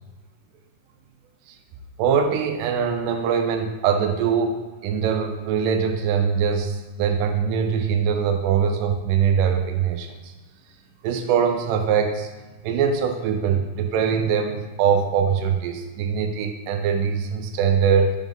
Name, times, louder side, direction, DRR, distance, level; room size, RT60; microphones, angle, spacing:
voice 1, 2.0-4.6 4.8-10.3 11.0-12.3 12.6-18.2, right 7 dB, 90° right, 5 dB, 2.2 m, -22 dB
6.2 x 3.7 x 5.3 m, 1.2 s
omnidirectional pair, 3.7 m